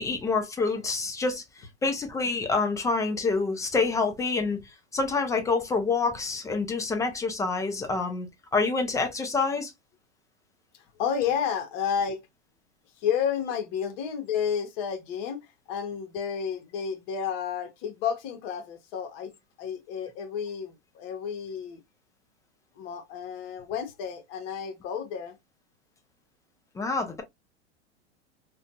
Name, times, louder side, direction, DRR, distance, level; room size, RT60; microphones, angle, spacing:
voice 1, 0.0-4.6 4.9-8.3 8.5-9.7 26.8-27.2, left 4 dB, 10° left, 0.4 m, -27 dB
voice 2, 11.0-12.2 13.0-19.3 19.6-21.8 22.8-25.4, left 7 dB, 50° left, 0.9 m, -31 dB
2.5 x 2.3 x 2.5 m
hypercardioid pair, 105°, 36 cm